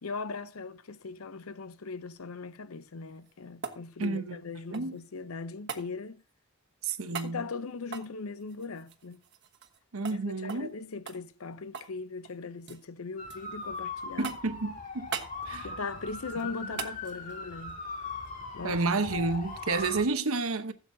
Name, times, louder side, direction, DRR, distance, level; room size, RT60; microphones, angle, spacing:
voice 1, 0.0-6.2 7.1-9.2 10.1-14.3 15.6-17.8 18.5-18.8, left 4 dB, 90° left, 0.7 m, -39 dB
metal clanks, 3.0-5.1 5.7-5.9 7.1-7.4 7.8-9.8 10.0-10.2 10.5-10.7 11.1-12.0 12.2-12.8 13.3-13.8 14.2-14.6 15.1-15.4 16.8-17.0 19.3-19.4, right 6 dB, 55° right, 1.3 m, -40 dB
voice 2, 4.0-4.4 4.7-5.0 6.8-7.4 9.9-10.7 14.2-15.1 15.5-15.7 18.6-20.7, right 3 dB, 85° right, 1.0 m, -30 dB
sound 1, 13.2-20.0, left 3 dB, 35° left, 2.1 m, -40 dB
15.5 x 8.0 x 2.7 m
head